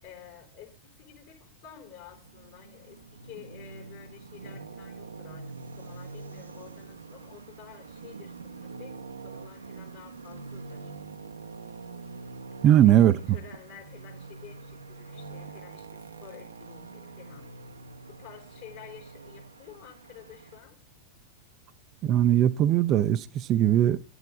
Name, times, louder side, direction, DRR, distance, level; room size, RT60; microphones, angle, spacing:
voice 1, 0.0-5.5 5.8-10.9 12.8-17.5 18.1-20.8, left 9 dB, 55° left, 4.2 m, -50 dB
Traffic noise roadway noise, 2.1-20.6, right 4 dB, 75° right, 0.8 m, -44 dB
voice 2, 12.6-13.1 22.0-24.0, right 11 dB, 35° right, 0.5 m, -20 dB
11.5 x 9.6 x 3.7 m
figure-of-eight pair, 90°, 0 cm